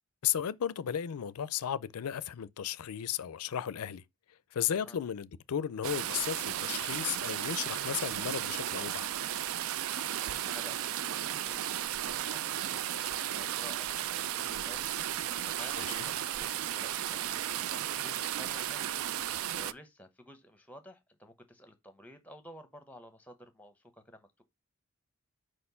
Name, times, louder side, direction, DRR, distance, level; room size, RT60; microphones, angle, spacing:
voice 1, 0.2-4.0 4.5-9.1 15.8-16.0, left 9 dB, 90° left, 0.4 m, -34 dB
sound 1, 5.8-19.7, right 11 dB, 70° right, 0.4 m, -34 dB
voice 2, 9.8-24.4, equal, 5° left, 0.9 m, -53 dB
5.0 x 4.4 x 5.5 m
head